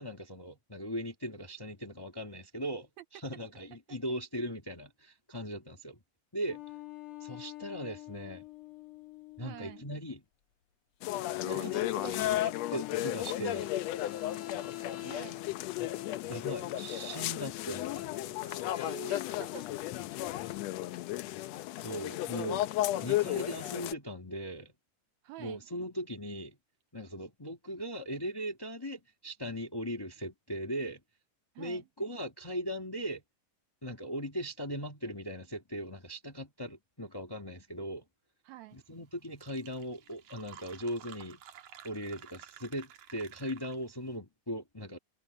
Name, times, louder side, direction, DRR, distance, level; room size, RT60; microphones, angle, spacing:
voice 1, 0.0-6.0 6.3-6.6 7.2-8.5 9.4-10.2 11.5-13.7 15.8-15.9 16.3-18.3 20.4-20.5 21.8-22.7 23.0-24.7 25.4-26.6 26.9-31.0 31.6-33.2 33.8-38.0 38.7-41.4 41.8-45.0, equal, 25° left, 0.4 m, -39 dB
sound 1, 6.5-10.0 11.1-20.6, left 17 dB, 55° left, 1.7 m, -44 dB
voice 2, 9.4-9.9 11.4-11.8 15.0-15.4 18.4-19.7 25.2-25.6 31.5-31.8 38.4-38.8, right 15 dB, 80° right, 1.6 m, -47 dB
sound 2, 11.0-23.9, left 14 dB, 80° left, 1.5 m, -34 dB
Fill (with liquid), 38.9-39.0 39.2-44.0, right 10 dB, 65° right, 2.7 m, -53 dB
omnidirectional pair, 3.8 m